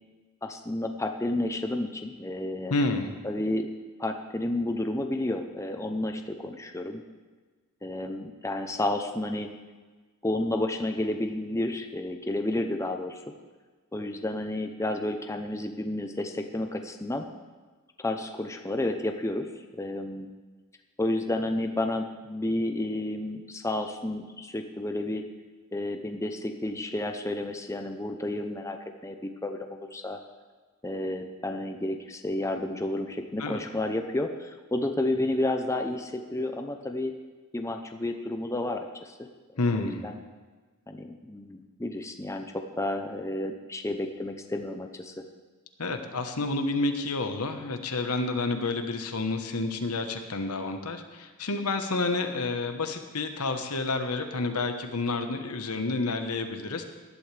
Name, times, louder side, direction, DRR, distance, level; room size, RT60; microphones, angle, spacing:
voice 1, 0.4-2.7 3.2-3.7 4.0-7.0 7.8-9.5 10.2-13.2 13.9-17.2 18.0-19.5 19.7-20.3 21.0-25.2 25.7-28.8 29.0-30.2 30.8-37.1 37.5-39.2 39.7-40.2 40.9-45.1, left 1 dB, 15° left, 5 dB, 0.7 m, -31 dB
voice 2, 2.7-3.1 33.4-33.6 39.6-40.0 45.8-56.8, left 3 dB, 85° left, 6 dB, 1.2 m, -29 dB
18.5 x 11.5 x 3.4 m, 1.4 s
head